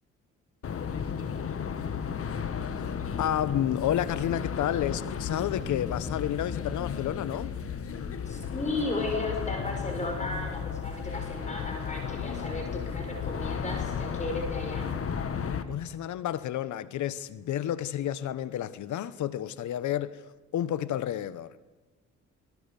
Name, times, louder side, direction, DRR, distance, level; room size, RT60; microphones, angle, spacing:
sound 1, 0.6-15.6, left 7 dB, 50° left, 1.8 m, -34 dB
voice 1, 2.7-7.5 15.7-20.2 20.5-21.6, left 11 dB, 75° left, 1.0 m, -31 dB
voice 2, 8.3-14.9, left 2 dB, 25° left, 5.6 m, -34 dB
29.0 x 20.0 x 6.9 m
cardioid pair, 90°, 30 cm